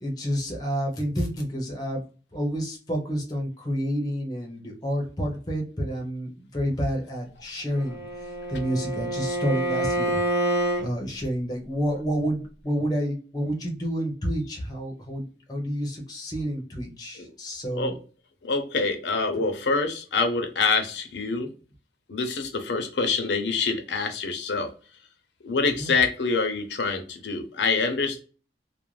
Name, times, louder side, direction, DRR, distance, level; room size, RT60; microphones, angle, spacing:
voice 1, 0.0-2.0 2.3-8.0 8.5-10.2 10.8-18.0 25.8-25.9, equal, 20° left, 0 dB, 0.6 m, -29 dB
Bowed string instrument, 7.7-10.9, right 1 dB, 15° right, 1.1 m, -27 dB
voice 2, 18.4-21.5 22.1-24.7 25.4-28.2, left 4 dB, 80° left, 6 dB, 0.6 m, -26 dB
2.4 x 2.0 x 3.0 m, 0.38 s
head